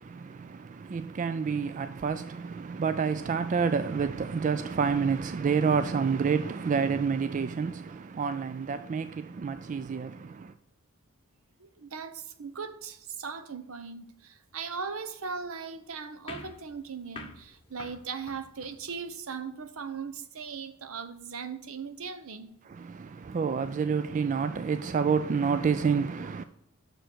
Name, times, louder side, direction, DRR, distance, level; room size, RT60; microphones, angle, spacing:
voice 1, 0.0-10.5 22.7-26.4, right 5 dB, 35° right, 0.3 m, -29 dB
voice 2, 11.6-22.5, right 5 dB, 70° right, 0.8 m, -39 dB
sound 1, 16.3-19.2, left 3 dB, 25° left, 1.0 m, -47 dB
6.9 x 6.4 x 6.1 m
head